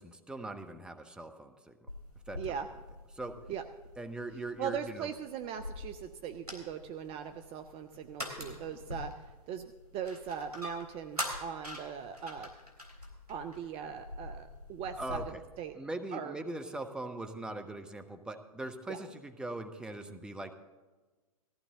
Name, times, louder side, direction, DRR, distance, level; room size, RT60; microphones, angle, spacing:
voice 1, 0.0-1.9 2.3-2.6 3.1-3.4 4.0-5.1 15.0-15.4 15.7-20.5, right 2 dB, 5° right, 5 dB, 1.0 m, -41 dB
sound 1, 1.9-15.2, left 1 dB, 85° right, 3.5 m, -45 dB
voice 2, 2.4-2.7 3.5-3.6 4.6-9.1 9.5-12.5 13.3-15.2 15.6-15.8 16.1-16.3 18.9-19.0, right 8 dB, 30° right, 8 dB, 0.7 m, -40 dB
19.0 x 14.5 x 3.8 m, 1.3 s
figure-of-eight pair, 100°, 19 cm